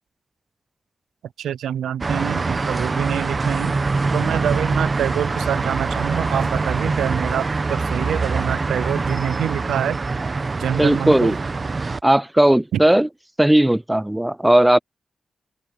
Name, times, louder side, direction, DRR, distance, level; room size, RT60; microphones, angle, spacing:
voice 1, 1.4-3.8 4.1-10.0 10.6-11.4 12.7-12.8, right 10 dB, 90° right, 0.6 m, -25 dB
sound 1, 2.0-12.0, right 3 dB, 45° right, 1.1 m, -24 dB
voice 2, 10.8-11.4 12.0-13.1 13.4-14.8, right 1 dB, 10° right, 0.4 m, -16 dB
open air
supercardioid pair, 45°, 0 cm